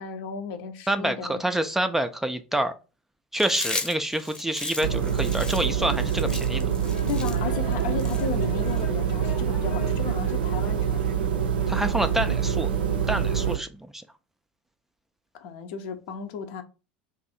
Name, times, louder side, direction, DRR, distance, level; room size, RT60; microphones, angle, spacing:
voice 1, 0.0-1.4 7.1-11.0 15.3-16.6, left 7 dB, 60° left, 0.6 m, -34 dB
voice 2, 0.9-2.7 3.3-6.7 11.7-12.7 13.1-14.0, right 1 dB, 5° right, 0.3 m, -27 dB
Chewing mastication, 3.3-8.8, left 2 dB, 15° left, 0.7 m, -36 dB
sound 1, 4.8-13.6, right 7 dB, 75° right, 0.4 m, -25 dB
sound 2, 6.8-13.2, left 4 dB, 75° left, 1.0 m, -45 dB
2.6 x 2.5 x 4.1 m
figure-of-eight pair, 80°, 5 cm